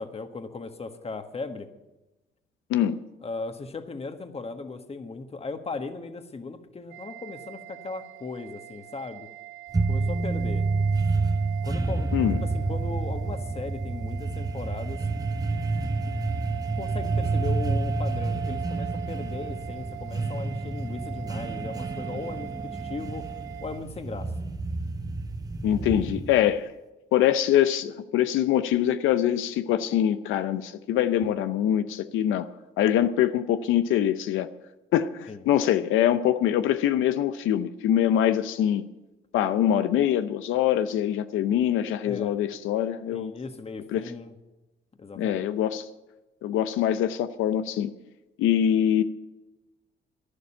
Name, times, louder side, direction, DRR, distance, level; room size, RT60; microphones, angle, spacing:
voice 1, 0.0-1.7 3.2-9.3 9.9-10.7 11.6-12.1 12.4-15.0 16.1-16.2 16.8-23.3 23.6-24.3 35.3-35.5 42.0-42.3 43.1-44.3 45.0-45.4, left 3 dB, 30° left, 1.5 m, -37 dB
voice 2, 2.7-3.0 12.1-12.4 25.6-26.7 27.1-32.5 32.8-34.5 34.9-38.9 39.3-43.3 43.9-44.0 45.2-45.9 46.4-47.9 48.4-49.0, left 10 dB, 90° left, 0.7 m, -24 dB
sound 1, 6.9-23.8, right 12 dB, 85° right, 0.6 m, -40 dB
sound 2, 9.7-26.5, right 3 dB, 20° right, 1.0 m, -29 dB
11.5 x 11.5 x 8.8 m
cardioid pair, 90°, 20 cm